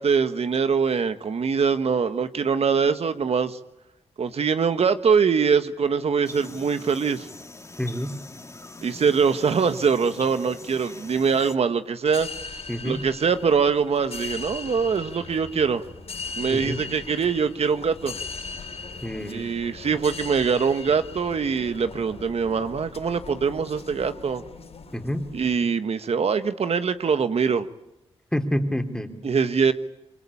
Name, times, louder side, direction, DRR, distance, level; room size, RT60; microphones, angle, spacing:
voice 1, 0.0-3.6 4.2-7.3 8.8-12.3 12.8-15.8 16.4-18.1 19.3-24.4 25.3-27.7 29.2-29.7, right 6 dB, 70° right, 10 dB, 1.3 m, -23 dB
sound 1, 6.2-11.6, left 2 dB, 25° left, 2.6 m, -43 dB
voice 2, 7.8-8.2 12.7-13.0 16.5-16.8 19.0-19.5 24.9-25.2 28.3-29.1, equal, 5° left, 5 dB, 3.5 m, -27 dB
sound 2, 12.1-25.5, left 4 dB, 70° left, 6.6 m, -39 dB
27.5 x 24.5 x 8.6 m, 0.90 s
cardioid pair, 70°, 11 cm